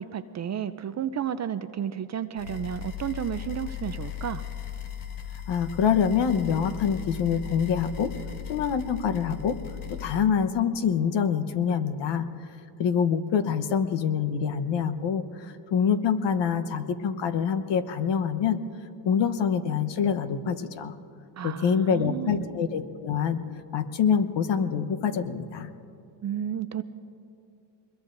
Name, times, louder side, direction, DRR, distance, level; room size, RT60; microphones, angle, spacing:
voice 1, 0.0-4.4 21.4-22.5 26.2-26.8, right 9 dB, 35° right, 11 dB, 0.5 m, -32 dB
sound 1, 2.4-10.2, left 10 dB, 85° left, 1.7 m, -37 dB
voice 2, 5.5-8.1 8.5-9.6 9.9-12.3 12.8-18.6 19.0-20.9 21.4-23.4 23.7-25.7, left 7 dB, 60° left, 10 dB, 1.1 m, -25 dB
24.0 x 21.5 x 2.6 m, 2.7 s
cardioid pair, 95°, 50 cm